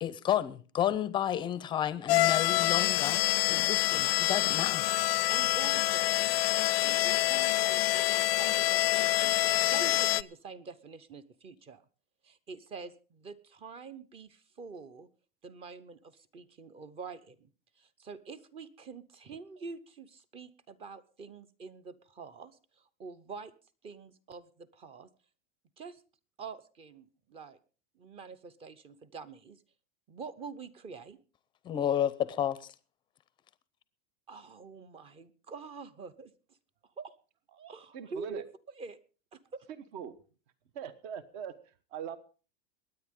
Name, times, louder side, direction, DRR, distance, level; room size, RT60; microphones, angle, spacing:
voice 1, 0.0-4.8 31.6-32.6, left 10 dB, 15° left, 0.6 m, -31 dB
sound 1, 2.1-10.2, left 18 dB, 90° left, 0.5 m, -26 dB
voice 2, 5.3-6.3 6.8-11.8 12.2-15.1 15.4-17.5 17.8-23.5 23.8-25.1 25.8-26.0 26.4-27.6 27.9-29.6 30.1-31.2 34.3-36.6 37.0-37.1 37.5-38.4 38.8-39.0 39.3-39.7, right 5 dB, 20° right, 0.7 m, -46 dB
voice 3, 37.9-38.4 39.9-40.1 40.7-42.2, right 8 dB, 50° right, 1.1 m, -41 dB
22.5 x 9.7 x 3.7 m
supercardioid pair, 165°, 29 cm